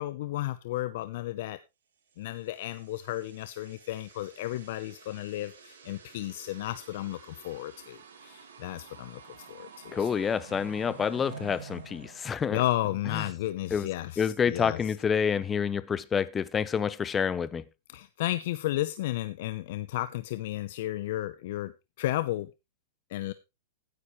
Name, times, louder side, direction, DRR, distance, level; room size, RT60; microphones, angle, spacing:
voice 1, 0.0-1.6 2.2-10.1 12.5-14.8 17.9-22.5 23.1-23.3, left 15 dB, 60° left, 0.7 m, -33 dB
sound 1, 2.5-13.2, right 6 dB, 75° right, 3.9 m, -49 dB
voice 2, 9.9-12.6 13.1-13.2 13.7-13.9 14.2-17.6, left 7 dB, 20° left, 0.7 m, -28 dB
15.5 x 9.5 x 3.1 m
hypercardioid pair, 125°, 0 cm